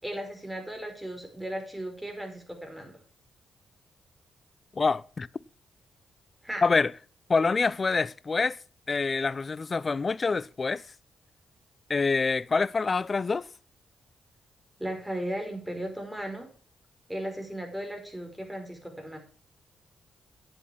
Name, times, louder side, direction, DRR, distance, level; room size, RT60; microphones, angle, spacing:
voice 1, 0.0-3.0 6.4-6.7 14.8-16.5 17.1-19.2, right 1 dB, 10° right, 5.4 m, -36 dB
voice 2, 4.8-5.3 6.6-6.9 7.3-8.6 8.9-10.8 11.9-13.5, left 4 dB, 40° left, 0.6 m, -26 dB
9.9 x 8.4 x 7.3 m
supercardioid pair, 55°, 0 cm